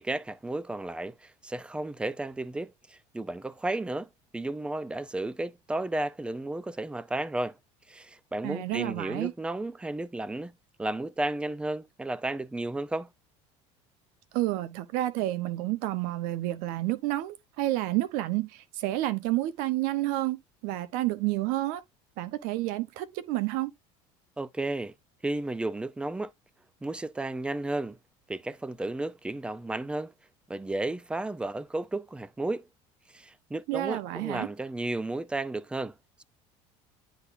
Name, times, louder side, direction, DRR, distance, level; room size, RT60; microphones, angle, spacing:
voice 1, 0.0-7.6 7.9-10.5 10.8-13.1 24.4-24.9 25.2-26.3 26.8-28.0 28.3-30.1 30.5-32.7 33.1-35.9, right 2 dB, 5° right, 0.4 m, -33 dB
voice 2, 8.4-9.3 14.3-21.8 22.2-23.7 33.7-34.5, right 16 dB, 70° right, 0.8 m, -30 dB
9.6 x 4.0 x 2.6 m
supercardioid pair, 110°, 15 cm